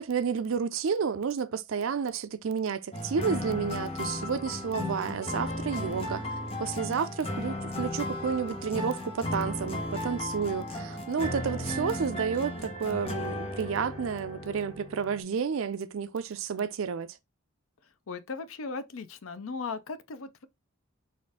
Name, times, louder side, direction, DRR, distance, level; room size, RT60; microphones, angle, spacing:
voice 1, 0.0-6.2 6.6-17.1, right 6 dB, 70° right, 0.4 m, -31 dB
sound 1, 2.9-15.2, left 1 dB, 30° left, 1.0 m, -35 dB
voice 2, 18.1-20.5, left 4 dB, 75° left, 0.5 m, -37 dB
4.2 x 2.5 x 3.4 m
head